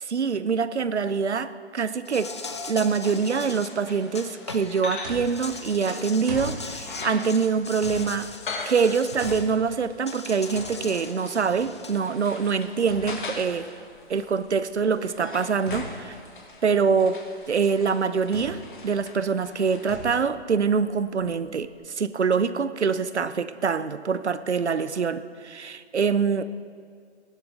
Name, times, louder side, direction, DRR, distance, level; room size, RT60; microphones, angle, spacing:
voice 1, 0.0-2.3 2.7-8.3 8.7-13.7 14.1-16.2 16.6-21.7 22.0-26.4, right 5 dB, 75° right, 14 dB, 0.7 m, -25 dB
Insect, 2.1-4.8 5.2-9.5 10.1-12.0, left 4 dB, 25° left, 0.5 m, -39 dB
sound 1, 3.0-20.0, left 3 dB, 45° left, 1.6 m, -41 dB
sound 2, 5.0-21.8, right 1 dB, 35° right, 2.2 m, -43 dB
16.5 x 11.5 x 4.0 m, 2.1 s
figure-of-eight pair, 145°, 34 cm